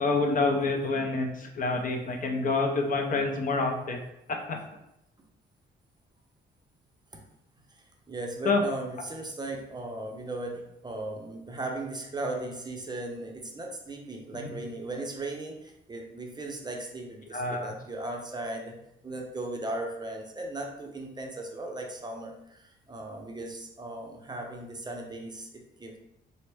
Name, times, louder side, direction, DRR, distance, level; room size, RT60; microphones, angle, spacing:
voice 1, 0.0-4.0 4.5-4.6 8.4-8.6 17.3-17.7, left 3 dB, 45° left, 3 dB, 0.6 m, -27 dB
voice 2, 7.7-18.7 19.0-26.0, right 2 dB, 20° right, 1 dB, 0.6 m, -37 dB
4.1 x 2.1 x 3.3 m, 0.81 s
cardioid pair, 90°, 20 cm